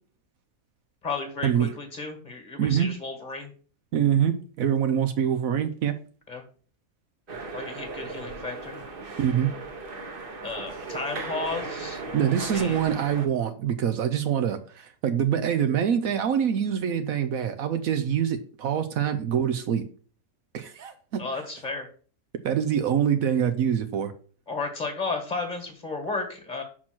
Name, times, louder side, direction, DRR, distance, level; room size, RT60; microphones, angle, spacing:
voice 1, 1.0-3.5 6.3-6.4 7.5-8.8 10.4-12.0 12.4-12.8 21.2-21.9 24.5-26.6, left 3 dB, 30° left, 1.6 m, -33 dB
voice 2, 3.9-5.9 9.2-9.5 12.1-19.8 20.5-21.2 22.4-24.1, right 9 dB, 70° right, 1.0 m, -25 dB
sound 1, 7.3-13.3, right 3 dB, 40° right, 1.1 m, -37 dB
5.8 x 4.3 x 6.0 m
omnidirectional pair, 1.6 m